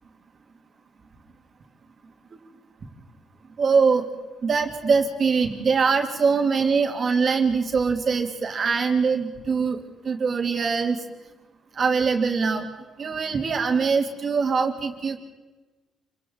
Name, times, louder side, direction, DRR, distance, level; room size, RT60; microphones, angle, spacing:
voice 1, 3.6-4.1 4.4-11.0 11.8-12.7 13.0-15.2, right 5 dB, 40° right, 3 dB, 2.3 m, -23 dB
28.5 x 24.5 x 3.9 m, 1.2 s
cardioid pair, 140°, 0 cm